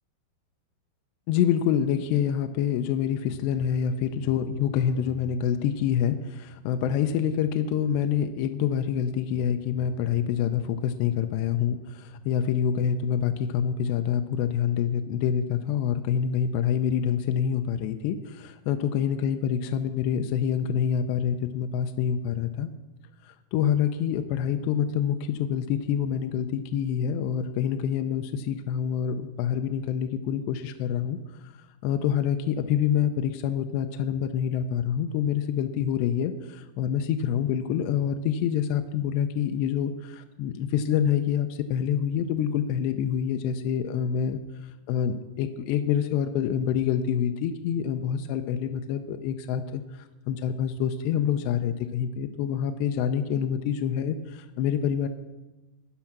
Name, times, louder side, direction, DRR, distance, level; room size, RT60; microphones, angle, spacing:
voice 1, 1.3-22.7 23.5-31.2 31.8-44.4 44.9-49.8 50.3-55.1, left 8 dB, 80° left, 7 dB, 2.6 m, -26 dB
13.0 x 9.9 x 5.9 m, 1.1 s
omnidirectional pair, 5.3 m